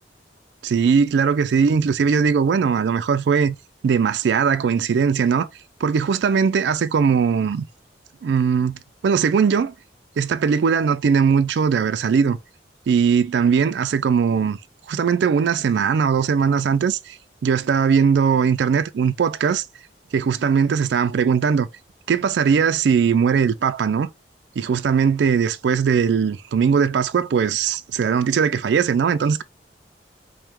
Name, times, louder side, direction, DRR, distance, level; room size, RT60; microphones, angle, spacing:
voice 1, 0.6-3.6 3.8-5.5 5.8-7.7 8.2-8.8 9.0-9.7 10.2-12.4 12.9-14.6 14.9-19.7 20.1-21.7 22.1-24.1 24.6-29.4, right 6 dB, 70° right, 0.3 m, -19 dB
4.6 x 2.1 x 3.4 m
head